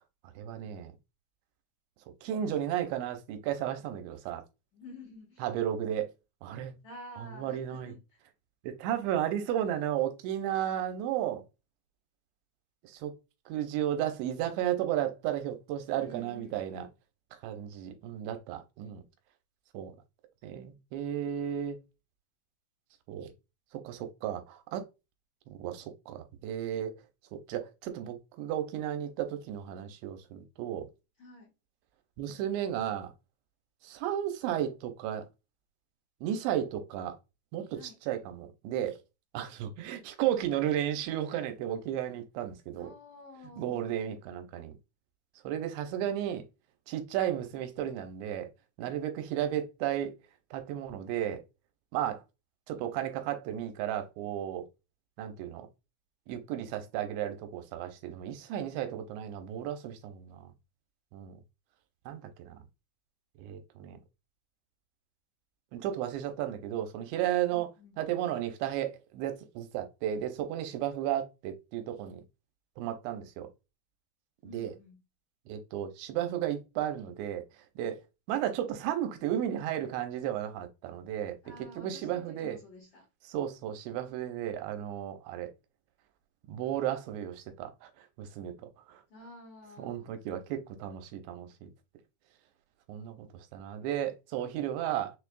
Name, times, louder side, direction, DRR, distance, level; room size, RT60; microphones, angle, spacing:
voice 1, 0.4-0.9 2.2-4.4 5.4-6.1 6.4-6.7 7.2-7.9 8.6-11.4 12.8-13.1 13.5-16.9 17.4-19.0 19.7-19.9 20.4-21.8 23.1-23.3 23.7-24.8 25.6-26.9 27.3-30.9 32.2-33.1 33.8-35.3 36.2-37.2 37.5-37.8 38.1-39.0 39.3-42.9 43.6-44.7 45.4-46.4 46.9-48.5 48.8-50.1 50.5-51.4 51.9-52.2 52.7-54.6 55.2-55.7 56.3-60.5 61.1-61.4 62.1-62.6 63.4-64.0 65.7-67.7 68.0-72.2 72.8-73.5 74.5-74.7 75.5-77.4 77.8-78.0 78.3-81.4 81.8-82.6 83.3-85.5 86.5-88.5 88.9-89.0 89.8-91.7 92.9-95.1, right 11 dB, 90° right, 2.9 m, -34 dB
voice 2, 4.7-5.5 6.8-8.2 16.0-16.9 31.2-31.5 37.7-38.0 42.8-44.0 67.5-68.0 74.4-75.0 81.4-83.1 89.1-90.2, left 2 dB, 60° left, 2.1 m, -50 dB
6.5 x 2.6 x 2.3 m
omnidirectional pair, 5.1 m